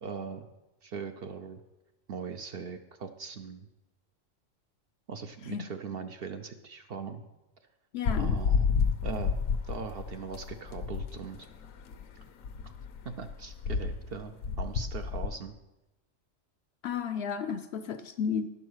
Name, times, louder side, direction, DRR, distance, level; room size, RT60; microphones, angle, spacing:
voice 1, 0.0-0.5 0.8-1.6 2.1-3.7 5.1-7.2 8.1-8.7 9.0-11.5 13.0-15.6, right 5 dB, 60° right, 7 dB, 0.7 m, -40 dB
voice 2, 7.9-8.3 16.8-18.5, left 7 dB, 65° left, 10 dB, 0.7 m, -33 dB
sound 1, 8.1-15.3, left 5 dB, 85° left, 1.1 m, -30 dB
11.5 x 5.5 x 6.3 m, 1.0 s
omnidirectional pair, 1.4 m